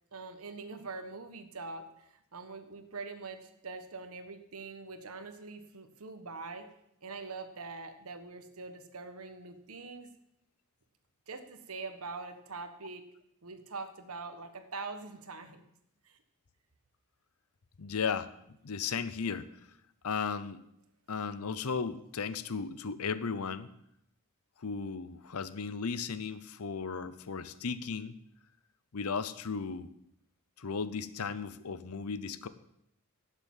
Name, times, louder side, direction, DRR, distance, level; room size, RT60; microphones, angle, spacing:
voice 1, 0.1-2.0 2.3-6.7 7.0-10.1 11.3-13.0 13.4-15.6 16.0-16.2, right 3 dB, 80° right, 9 dB, 1.3 m, -43 dB
voice 2, 17.8-18.3 18.6-19.5 20.0-20.6 21.1-23.7 24.6-28.2 28.9-29.9 30.6-32.5, left 5 dB, 85° left, 15 dB, 0.7 m, -35 dB
12.0 x 7.0 x 7.3 m, 0.76 s
head